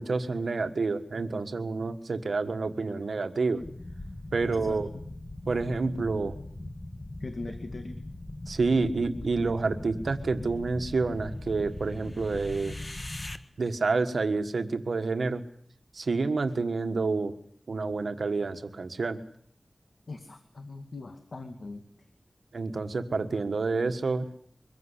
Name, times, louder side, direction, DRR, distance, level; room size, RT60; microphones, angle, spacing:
voice 1, 0.0-3.6 4.3-4.9 5.5-6.3 8.5-12.8 13.6-15.4 15.9-17.3 17.7-19.2 22.5-24.3, right 3 dB, 90° right, 8 dB, 1.5 m, -28 dB
sound 1, 3.6-13.4, left 1 dB, 35° left, 1.6 m, -40 dB
voice 2, 4.4-4.8 7.2-8.0 20.1-22.1, left 3 dB, 70° left, 6 dB, 2.2 m, -41 dB
23.5 x 16.0 x 9.9 m, 0.63 s
wide cardioid pair, 75°, 0 cm